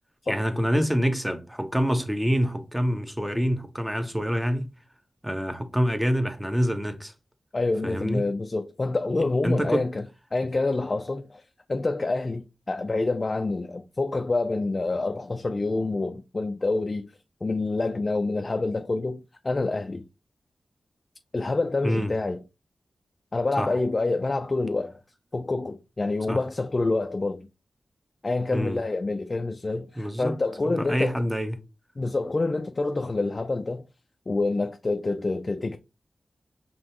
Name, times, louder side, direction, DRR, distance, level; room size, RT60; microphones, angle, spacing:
voice 1, 0.3-4.7 5.2-7.1 7.8-8.2 9.4-9.9 21.8-22.1 23.6-23.7 26.3-26.4 28.5-28.8 30.0-30.3 30.6-31.6, equal, 10° right, 1.1 m, -26 dB
voice 2, 7.5-10.0 10.3-11.4 11.7-17.1 17.4-20.0 21.3-22.4 23.3-25.0 25.3-27.5 28.2-31.2 32.0-33.8 34.3-35.8, left 3 dB, 45° left, 0.5 m, -27 dB
5.2 x 3.4 x 2.9 m
cardioid pair, 45°, 0 cm